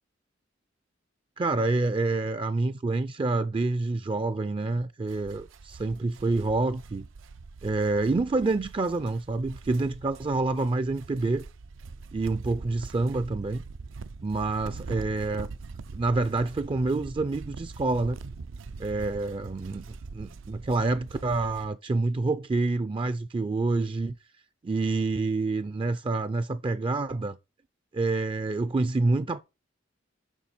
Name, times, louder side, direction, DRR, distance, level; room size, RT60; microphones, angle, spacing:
voice 1, 1.4-7.1 7.6-11.4 12.1-13.6 14.2-15.5 15.9-18.2 18.8-19.8 20.1-24.1 24.6-27.4 27.9-29.4, right 3 dB, 25° right, 0.3 m, -27 dB
sound 1, 5.1-21.7, right 4 dB, 85° right, 0.5 m, -43 dB
7.2 x 5.7 x 4.2 m
head